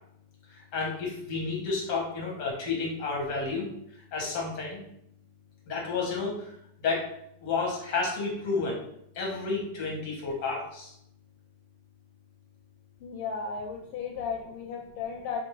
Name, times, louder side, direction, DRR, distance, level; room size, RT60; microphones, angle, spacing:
voice 1, 0.7-3.7 4.1-4.8 5.7-6.3 6.8-7.1 7.4-8.8 9.1-10.9, left 4 dB, 55° left, -2 dB, 1.6 m, -30 dB
voice 2, 13.0-15.4, left 5 dB, 80° left, 1 dB, 1.4 m, -35 dB
4.8 x 2.5 x 3.0 m, 0.74 s
omnidirectional pair, 2.4 m